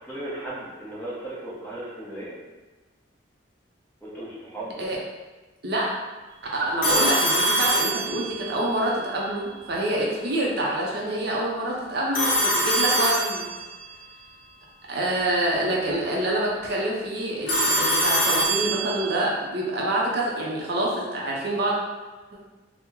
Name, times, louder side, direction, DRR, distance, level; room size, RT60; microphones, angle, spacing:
voice 1, 0.0-2.3 4.0-4.7, right 1 dB, 10° left, -8 dB, 0.7 m, -36 dB
voice 2, 6.5-13.5 14.9-21.8, right 1 dB, 55° right, -3 dB, 0.5 m, -26 dB
Telephone, 6.8-8.6 12.1-13.8 17.5-19.2, right 1 dB, 45° left, 0.8 m, -23 dB
2.9 x 2.0 x 3.6 m, 1.2 s
head